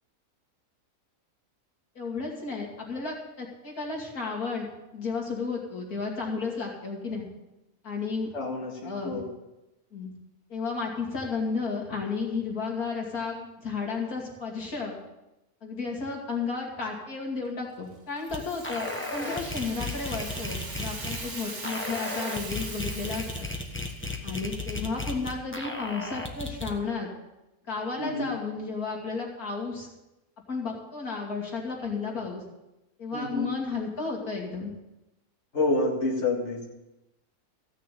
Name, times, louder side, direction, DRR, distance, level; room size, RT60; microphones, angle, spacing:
voice 1, 1.9-4.7 4.9-7.3 7.8-8.3 8.8-9.2 9.9-10.1 10.5-15.0 15.6-23.5 24.2-27.1 27.7-29.9 30.5-32.4 33.0-34.7, left 4 dB, 80° left, -1 dB, 3.1 m, -33 dB
voice 2, 8.3-9.3 19.3-19.4 28.0-28.3 33.1-33.5 35.5-36.6, left 2 dB, 50° left, -3 dB, 2.5 m, -28 dB
Rattle (instrument), 18.2-24.2, right 3 dB, 50° right, 2.1 m, -41 dB
sound 1, 18.3-18.4 18.6-21.2 21.6-26.8, left 2 dB, 10° left, 1.2 m, -35 dB
15.5 x 6.5 x 8.4 m, 0.96 s
omnidirectional pair, 1.5 m